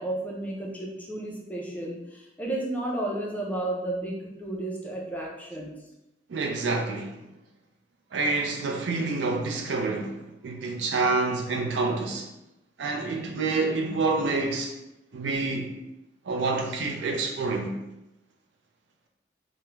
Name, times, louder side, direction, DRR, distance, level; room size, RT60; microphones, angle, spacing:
voice 1, 0.0-5.8, right 1 dB, 10° left, 0.4 m, -32 dB
voice 2, 6.3-7.2 8.1-12.3 12.8-14.7 15.1-15.7 16.3-17.7, right 3 dB, 70° right, 0.4 m, -27 dB
2.3 x 2.0 x 3.0 m
head